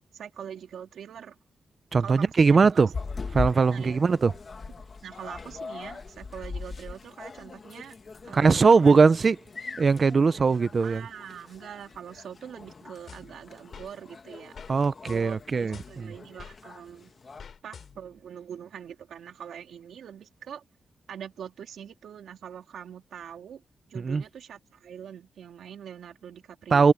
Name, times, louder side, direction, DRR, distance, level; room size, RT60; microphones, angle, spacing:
voice 1, 0.1-1.4 2.0-2.8 3.7-4.0 4.8-8.0 8.2-9.0 10.8-14.6 15.0-17.1 17.6-20.6 21.1-26.9, right 8 dB, 90° right, 3.3 m, -43 dB
voice 2, 1.9-2.9 3.3-4.3 8.3-9.4 9.8-11.0 14.7-16.1 23.9-24.2 26.7-26.9, right 4 dB, 35° right, 0.5 m, -20 dB
sound 1, 2.9-17.4, left 4 dB, 35° left, 1.5 m, -41 dB
sound 2, 13.1-13.9 14.5-14.8 15.1-16.6 17.4-18.2, left 6 dB, 50° left, 5.5 m, -47 dB
wide cardioid pair, 170°, 0 cm